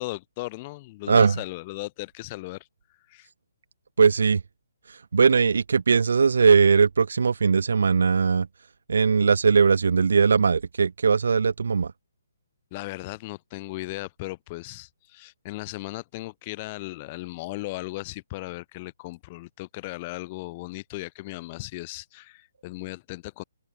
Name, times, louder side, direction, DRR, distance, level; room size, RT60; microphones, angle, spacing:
voice 1, 0.0-2.7 3.1-3.3 12.7-23.4, left 21 dB, 25° left, 1.0 m, -37 dB
voice 2, 1.1-1.4 4.0-4.4 5.1-8.5 8.9-11.9, right 5 dB, 75° right, 0.8 m, -20 dB
open air
hypercardioid pair, 165°, 0 cm